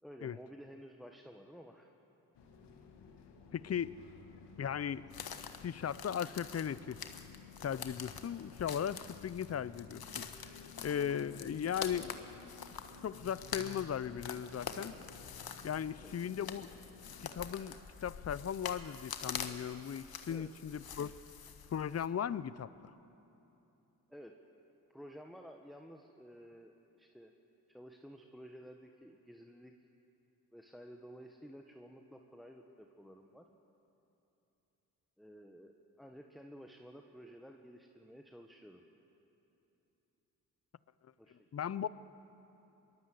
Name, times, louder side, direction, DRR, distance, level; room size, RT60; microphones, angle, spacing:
voice 1, 0.0-1.9 7.7-7.8 16.0-16.1 20.3-20.5 24.1-24.4 24.9-27.3 27.7-29.7 30.5-33.5 35.2-38.8 41.2-41.4, equal, ahead, 3 dB, 1.5 m, -53 dB
sound 1, 2.3-17.4, left 5 dB, 80° left, 1.9 m, -55 dB
voice 2, 3.5-3.9 4.6-5.0 5.6-7.0 7.6-10.3 10.8-12.2 13.0-15.0 15.6-16.7 17.3-21.1 21.7-22.7 41.5-41.9, left 8 dB, 40° left, 17 dB, 0.7 m, -37 dB
sound 2, 5.1-22.1, left 7 dB, 60° left, 1.6 m, -46 dB
22.5 x 20.5 x 7.9 m, 3.0 s
supercardioid pair, 50°, 41 cm